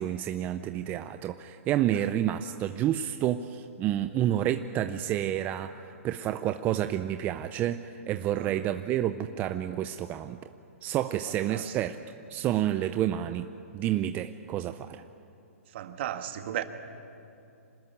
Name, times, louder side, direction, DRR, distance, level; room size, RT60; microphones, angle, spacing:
voice 1, 0.0-10.5 10.8-12.0 12.3-15.0, right 11 dB, 20° right, 0.6 m, -29 dB
voice 2, 15.7-16.6, right 11 dB, 50° right, 1.8 m, -35 dB
26.0 x 19.5 x 9.6 m
hypercardioid pair, 150°, 8 cm